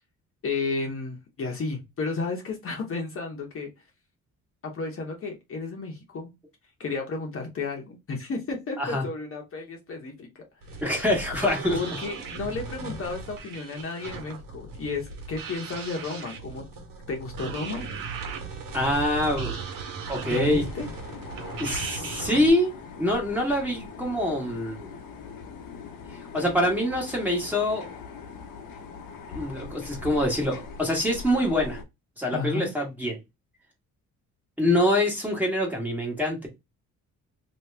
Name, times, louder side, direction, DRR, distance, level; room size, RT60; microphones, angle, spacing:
voice 1, 0.4-3.7 4.6-6.3 6.8-10.4 11.7-16.6 17.1-17.8 20.3-20.9 32.3-32.7, left 4 dB, 40° left, 1.1 m, -32 dB
sound 1, 10.6-22.5, right 4 dB, 85° right, 1.5 m, -37 dB
voice 2, 10.8-11.8 18.7-19.6 20.1-20.6 21.6-22.7 23.0-24.9 26.3-27.8 29.3-31.8 32.2-33.2 34.6-36.4, left 1 dB, 5° right, 1.4 m, -25 dB
sound 2, 20.2-31.8, left 5 dB, 80° left, 1.1 m, -41 dB
3.0 x 2.9 x 3.3 m
cardioid pair, 140°, 34 cm